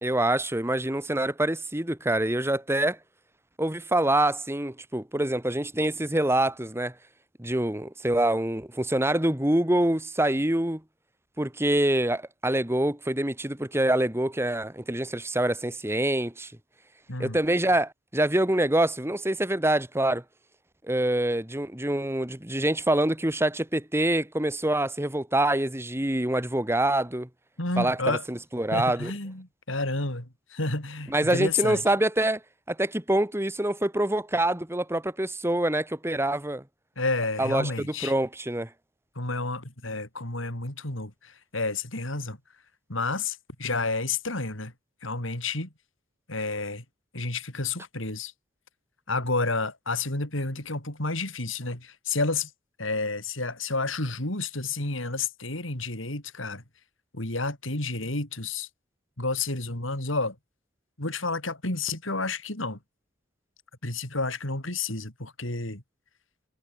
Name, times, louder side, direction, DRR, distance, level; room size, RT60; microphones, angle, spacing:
voice 1, 0.0-3.0 3.6-6.9 7.4-10.8 11.4-16.5 17.2-20.2 20.8-27.3 27.8-29.1 31.1-32.4 32.7-36.6 37.4-38.7, right 1 dB, 10° right, 1.9 m, -25 dB
voice 2, 27.6-28.2 28.7-31.8 37.0-38.1 39.2-42.4 42.9-44.7 45.0-45.7 46.3-46.8 47.1-48.3 49.1-52.5 52.8-56.6 57.1-58.7 59.2-60.4 61.0-62.8 63.8-65.8, left 3 dB, 75° left, 5.5 m, -30 dB
head